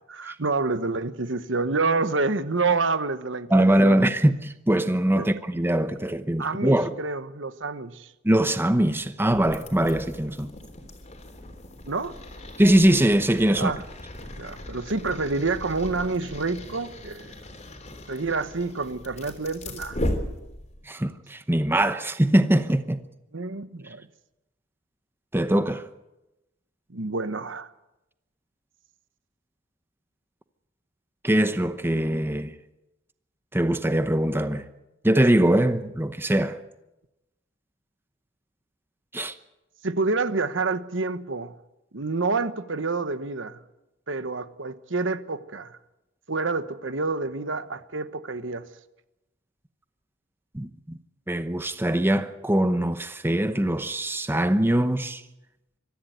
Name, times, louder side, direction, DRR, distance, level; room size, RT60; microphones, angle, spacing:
voice 1, 0.1-4.0 5.1-5.3 6.4-8.1 11.8-12.1 13.6-13.8 14.4-17.3 18.1-20.0 23.3-24.1 26.9-27.7 39.8-41.6 41.9-43.6 44.1-45.8 46.3-48.7, right 3 dB, 70° right, 1.1 m, -28 dB
voice 2, 3.5-6.9 8.2-10.5 12.6-13.7 20.9-23.0 25.3-25.9 31.2-32.5 33.5-34.6 35.0-36.6 39.1-39.3 50.5-51.0 51.3-55.2, right 1 dB, 10° right, 0.9 m, -22 dB
sound 1, 9.3-20.9, left 1 dB, 35° left, 3.4 m, -37 dB
23.5 x 14.5 x 9.3 m
head